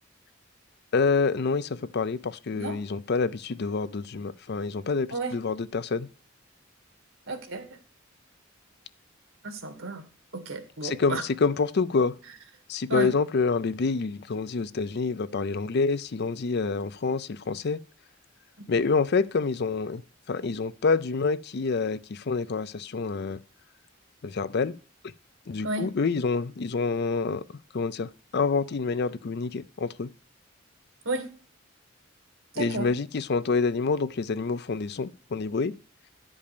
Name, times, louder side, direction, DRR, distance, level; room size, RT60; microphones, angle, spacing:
voice 1, 0.9-6.1 10.8-12.1 12.7-17.8 18.7-20.0 20.3-23.4 24.2-24.8 25.5-27.4 27.7-30.1 32.6-35.7, left 4 dB, 55° left, 0.5 m, -27 dB
voice 2, 7.3-7.8 9.4-10.1 10.3-11.2 12.9-13.1 25.6-25.9 31.1-31.3 32.5-32.9, right 2 dB, 80° right, 2.0 m, -32 dB
10.5 x 5.4 x 6.8 m
head